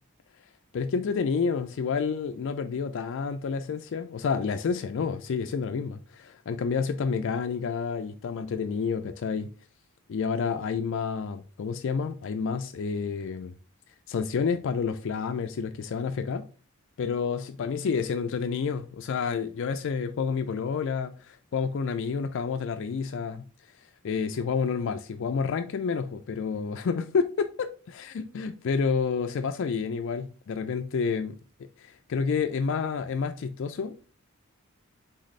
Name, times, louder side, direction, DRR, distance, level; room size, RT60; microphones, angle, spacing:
voice 1, 0.7-9.5 10.1-13.6 14.1-16.5 17.0-23.4 24.0-31.4 31.9-34.1, left 5 dB, 60° left, 0.3 m, -29 dB
4.1 x 4.0 x 3.2 m
head